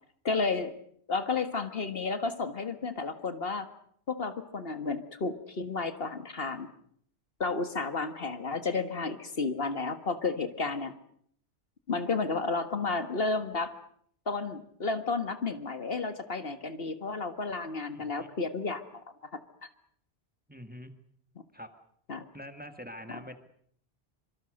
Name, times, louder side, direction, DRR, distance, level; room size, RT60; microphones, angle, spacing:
voice 1, 0.3-0.7 1.1-3.7 4.1-6.7 7.4-10.9 11.9-13.8 14.3-19.0 22.1-22.3, left 3 dB, 65° left, 9 dB, 1.8 m, -32 dB
voice 2, 17.9-18.3 20.5-20.9 21.5-21.7 22.3-23.4, equal, 10° right, 7 dB, 1.8 m, -44 dB
25.5 x 25.0 x 6.5 m, 0.64 s
omnidirectional pair, 1.1 m